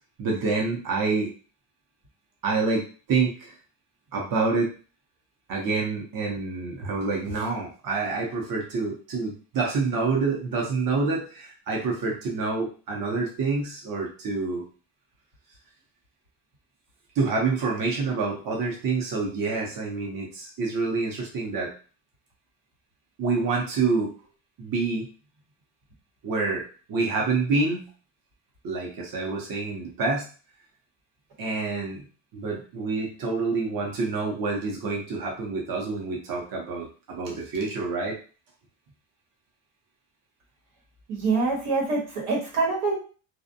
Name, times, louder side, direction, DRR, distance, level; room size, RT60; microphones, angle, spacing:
voice 1, 0.2-1.3 2.4-2.8 3.1-3.5 4.1-4.7 5.5-14.6 17.2-21.7 23.2-24.1 24.6-25.1 26.2-27.9 28.6-30.3 31.4-32.0 32.3-38.2, right 4 dB, 45° right, -1 dB, 0.6 m, -27 dB
voice 2, 41.1-42.9, right 3 dB, 90° right, -2 dB, 1.3 m, -25 dB
2.5 x 2.1 x 2.5 m, 0.37 s
cardioid pair, 160°, 50 cm